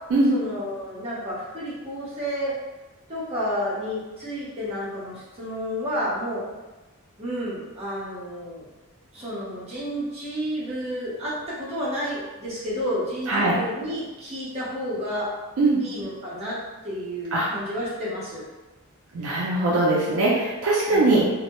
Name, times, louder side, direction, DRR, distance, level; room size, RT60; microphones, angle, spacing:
voice 1, 0.3-2.6 3.1-6.4 7.2-8.7 9.1-15.3 15.8-16.6 16.8-18.4 20.9-21.3, equal, 30° right, -8 dB, 0.7 m, -31 dB
voice 2, 13.3-13.6 15.6-15.8 17.3-17.5 19.1-21.3, right 2 dB, 70° right, -5 dB, 0.4 m, -21 dB
2.1 x 2.0 x 2.9 m, 1.1 s
head